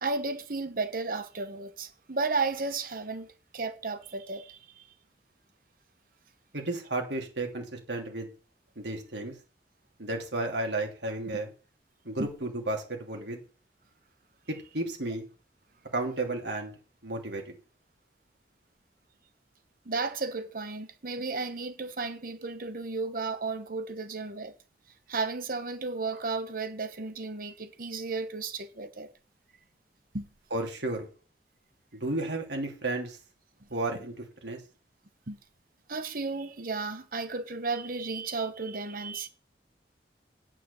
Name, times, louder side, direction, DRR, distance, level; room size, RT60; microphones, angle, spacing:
voice 1, 0.0-4.9 11.3-11.4 12.2-12.3 19.8-24.5 25.1-29.1 30.1-30.3 35.3-35.4 35.9-39.3, right 3 dB, 55° right, 1.1 m, -33 dB
voice 2, 6.5-8.3 8.8-9.3 10.0-11.5 12.0-13.4 14.5-15.2 15.9-16.7 17.0-17.5 30.5-31.1 32.0-33.2 33.7-34.6, right 2 dB, 80° right, 3.2 m, -33 dB
9.4 x 6.0 x 6.9 m
head